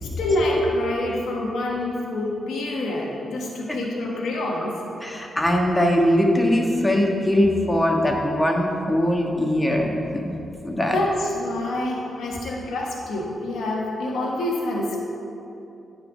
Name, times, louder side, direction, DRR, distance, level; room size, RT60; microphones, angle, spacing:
voice 1, 0.0-4.8 10.9-15.0, left 1 dB, 80° left, -3 dB, 1.3 m, -26 dB
voice 2, 5.0-9.9 10.6-11.0, left 1 dB, 15° left, 0 dB, 1.5 m, -21 dB
9.3 x 4.4 x 6.1 m, 2.8 s
supercardioid pair, 50°, 0 cm